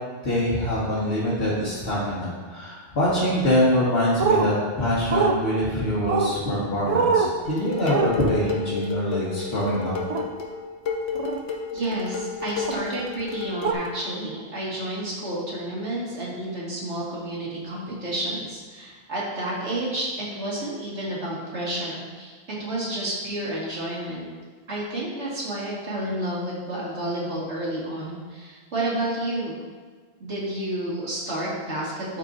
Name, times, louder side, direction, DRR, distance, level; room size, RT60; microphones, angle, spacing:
voice 1, 0.2-9.9, equal, 65° left, -10 dB, 1.9 m, -24 dB
sound 1, 4.2-4.5 5.1-5.4 6.1-6.3 6.9-7.3 7.9-8.1 10.1-10.3 11.1-11.4 12.7-12.8 13.6-13.7, right 5 dB, 55° right, 0.4 m, -22 dB
Dishes pots and pans, 7.4-14.1, left 5 dB, 85° left, 1.2 m, -32 dB
voice 2, 11.7-22.3 22.6-24.2 24.7-29.6 30.2-32.2, right 1 dB, 90° right, -6 dB, 2.2 m, -30 dB
12.0 x 4.6 x 2.7 m, 1.5 s
omnidirectional pair, 1.2 m